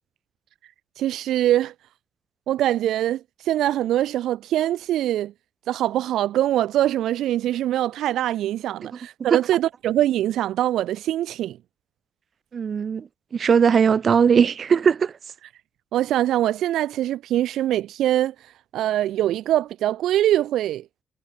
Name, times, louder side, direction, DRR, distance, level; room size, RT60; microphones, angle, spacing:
voice 1, 1.0-1.7 2.5-5.3 5.7-11.6 15.9-20.8, right 13 dB, 80° right, 1.1 m, -23 dB
voice 2, 12.5-15.1, right 6 dB, 50° right, 2.9 m, -19 dB
cardioid pair, 90°, 0 cm